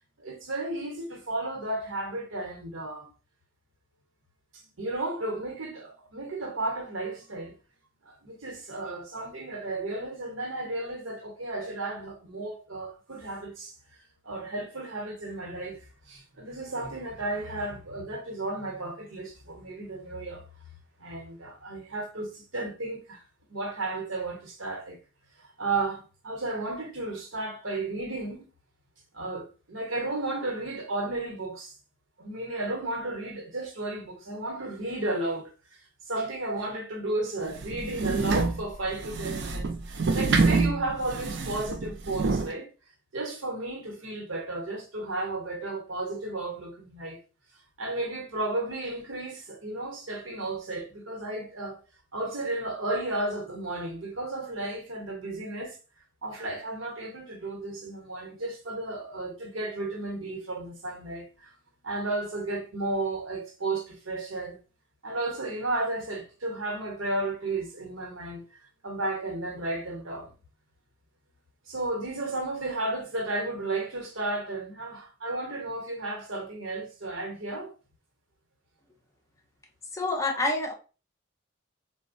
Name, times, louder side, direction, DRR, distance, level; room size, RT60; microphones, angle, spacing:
voice 1, 0.2-3.1 4.8-7.5 8.0-13.7 14.2-15.8 16.1-20.4 21.0-23.2 23.5-25.0 25.6-28.5 29.1-31.8 32.2-35.5 36.1-42.7 43.1-47.2 47.8-51.8 52.1-55.8 56.2-61.5 61.8-64.6 65.0-68.4 68.8-70.3 71.7-77.7, right 2 dB, 90° right, 1.0 m, -33 dB
sound 1, 37.5-42.5, right 3 dB, 60° right, 0.4 m, -27 dB
voice 2, 79.9-80.7, left 2 dB, 15° left, 0.4 m, -27 dB
4.0 x 2.2 x 2.6 m
head